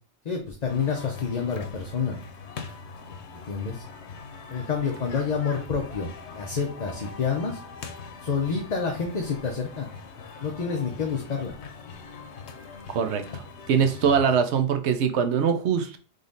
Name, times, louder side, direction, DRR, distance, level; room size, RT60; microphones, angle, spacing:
voice 1, 0.2-2.2 3.3-3.8 4.5-7.6 8.2-9.9 10.4-11.5 14.0-14.2, left 5 dB, 45° left, 2 dB, 0.8 m, -28 dB
sound 1, 0.7-14.2, left 5 dB, 85° left, 1.0 m, -42 dB
voice 2, 12.9-16.0, right 7 dB, 85° right, 7 dB, 1.0 m, -23 dB
3.9 x 3.3 x 3.9 m, 0.39 s
omnidirectional pair, 1.1 m